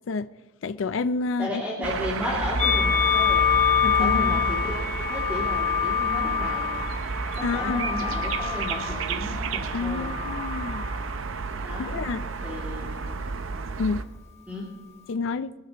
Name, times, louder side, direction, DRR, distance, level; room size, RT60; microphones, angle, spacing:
voice 1, 0.6-1.6 3.8-4.2 7.4-7.9 9.7-10.9 11.8-12.2 13.8-14.1 15.1-15.5, left 4 dB, 65° left, 0.4 m, -29 dB
voice 2, 1.4-3.4 4.0-6.7 7.4-10.1 11.6-11.9 12.4-12.9 14.5-14.6, left 1 dB, 10° right, 2.5 m, -33 dB
sound 1, 1.8-14.0, right 4 dB, 75° right, 0.7 m, -31 dB
Musical instrument, 2.6-9.0 9.8-10.8, left 8 dB, 35° left, 1.7 m, -26 dB
22.0 x 12.5 x 3.0 m
head